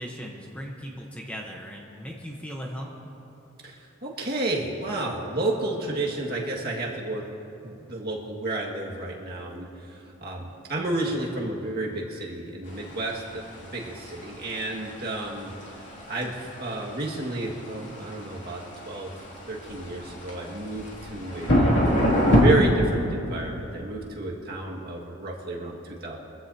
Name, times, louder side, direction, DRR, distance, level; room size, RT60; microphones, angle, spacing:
voice 1, 0.0-3.2, equal, 5° left, -1 dB, 1.0 m, -38 dB
voice 2, 3.6-7.2 7.6-15.5 16.1-19.1 19.5-26.2, right 2 dB, 45° right, -3 dB, 1.9 m, -31 dB
sound 1, 12.7-22.5, equal, 60° left, 2.6 m, -26 dB
23.5 x 15.0 x 2.8 m, 2.9 s
head